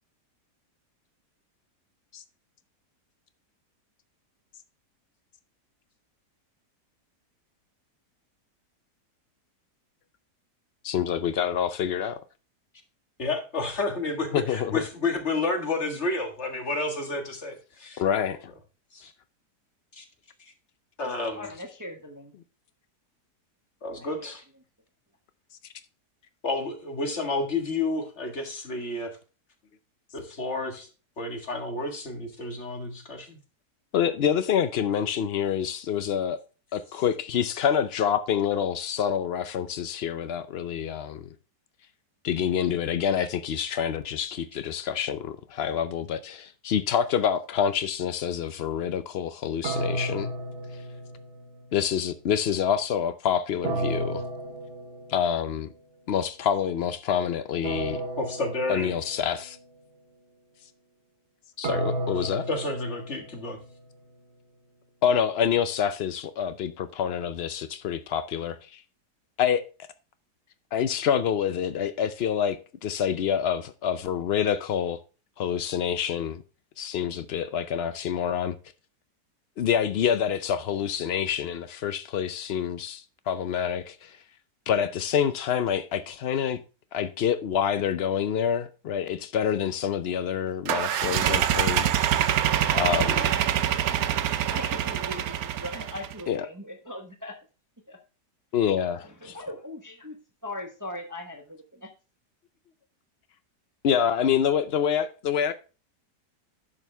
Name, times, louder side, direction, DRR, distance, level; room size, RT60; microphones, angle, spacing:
voice 1, 10.8-12.2 14.3-14.8 18.0-18.5 33.9-36.4 36.7-41.3 42.2-50.3 51.7-54.2 55.1-55.7 56.1-58.0 58.7-59.6 61.6-62.5 65.0-68.8 69.4-69.6 70.7-75.0 75.4-76.4 76.8-78.6 79.6-84.2 84.7-86.6 86.9-91.9 92.7-93.3 96.3-96.5 98.5-99.4 103.8-105.5, left 8 dB, 85° left, 0.5 m, -27 dB
voice 2, 13.2-18.0 18.9-19.1 19.9-20.0 20.4-20.5 21.0-21.5 23.8-24.4 26.4-29.2 30.1-30.9 31.2-33.4 36.9-37.0 58.2-59.0 62.2-63.6, left 2 dB, 40° left, 2.0 m, -31 dB
voice 3, 21.4-22.3 24.0-24.1 94.5-97.4 97.9-98.0 99.0-100.2 100.4-101.9, left 1 dB, 15° right, 0.9 m, -39 dB
sound 1, 49.6-51.7 53.6-55.5 57.6-59.5 61.6-63.8, right 2 dB, 40° right, 1.1 m, -33 dB
sound 2, 90.7-96.2, right 10 dB, 65° right, 1.1 m, -25 dB
10.5 x 6.3 x 3.4 m
omnidirectional pair, 1.8 m